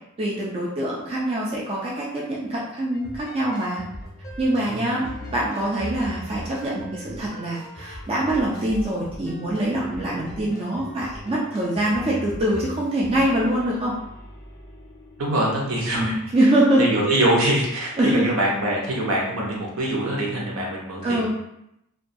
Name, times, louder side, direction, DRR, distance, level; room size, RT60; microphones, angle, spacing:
voice 1, 0.2-3.8 4.4-13.9 16.0-16.8 18.0-18.3 21.0-21.3, right 1 dB, 25° right, -5 dB, 0.3 m, -24 dB
sound 1, 2.9-16.3, equal, 15° left, 0.6 m, -40 dB
voice 2, 4.7-5.3 15.2-16.1 16.8-21.3, right 1 dB, 70° right, -3 dB, 0.7 m, -24 dB
2.2 x 2.2 x 2.6 m, 0.81 s
head